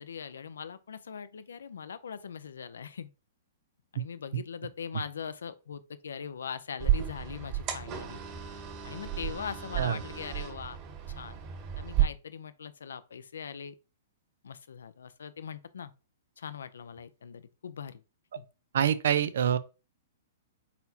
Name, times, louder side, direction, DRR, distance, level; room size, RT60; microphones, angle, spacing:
voice 1, 0.0-3.1 3.9-8.2 8.8-10.8 11.2-11.4 11.8-13.7 14.4-15.9 16.4-18.0 18.4-18.5, left 7 dB, 85° left, 0.5 m, -41 dB
sound 1, 6.8-12.0, right 11 dB, 40° right, 1.7 m, -32 dB
voice 2, 18.7-19.6, right 9 dB, 70° right, 0.5 m, -25 dB
4.2 x 4.1 x 2.7 m
hypercardioid pair, 140°, 0 cm